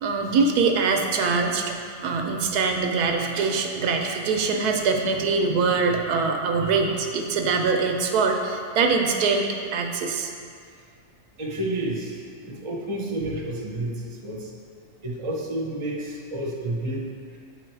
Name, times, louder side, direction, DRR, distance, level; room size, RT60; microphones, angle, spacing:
voice 1, 0.0-9.5 9.7-10.3, right 4 dB, 80° right, 3 dB, 1.2 m, -23 dB
voice 2, 11.4-14.5 15.0-17.4, right 1 dB, 25° right, -2 dB, 0.8 m, -30 dB
8.6 x 4.7 x 4.6 m, 2.2 s
omnidirectional pair, 1.6 m